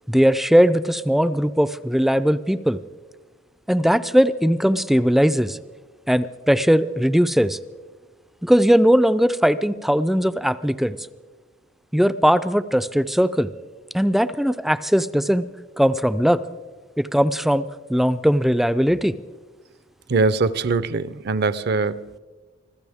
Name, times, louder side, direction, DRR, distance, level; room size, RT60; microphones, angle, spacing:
voice 1, 0.1-2.8 3.7-5.6 6.1-7.6 8.4-11.0 11.9-13.5 13.9-15.4 15.8-16.4 17.0-17.6 17.9-19.1, equal, ahead, 0.4 m, -19 dB
voice 2, 20.1-22.2, right 3 dB, 55° right, 0.5 m, -22 dB
25.0 x 15.5 x 3.5 m
head